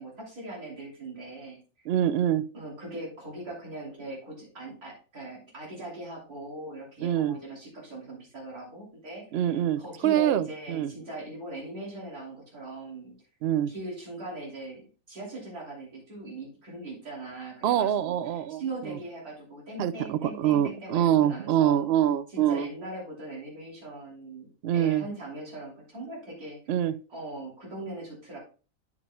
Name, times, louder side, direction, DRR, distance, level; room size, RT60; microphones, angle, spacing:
voice 1, 0.0-1.9 2.5-13.1 13.7-21.9 22.3-26.6 27.1-28.4, right 2 dB, 85° right, -4 dB, 3.6 m, -40 dB
voice 2, 1.9-2.4 7.0-7.3 9.3-10.9 13.4-13.7 17.6-18.6 19.8-22.7 24.6-25.0 26.7-26.9, right 11 dB, 65° right, 14 dB, 0.6 m, -25 dB
9.5 x 8.9 x 2.3 m, 0.35 s
omnidirectional pair, 1.5 m